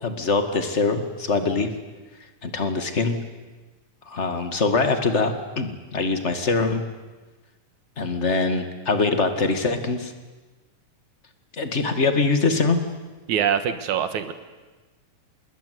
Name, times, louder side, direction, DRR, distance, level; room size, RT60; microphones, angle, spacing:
voice 1, 0.0-1.7 2.4-3.2 4.1-6.8 8.0-10.1 11.5-12.8, left 3 dB, 25° left, 8 dB, 1.6 m, -23 dB
voice 2, 13.3-14.3, right 8 dB, 65° right, 11 dB, 2.7 m, -24 dB
27.0 x 20.5 x 9.4 m, 1.2 s
omnidirectional pair, 3.9 m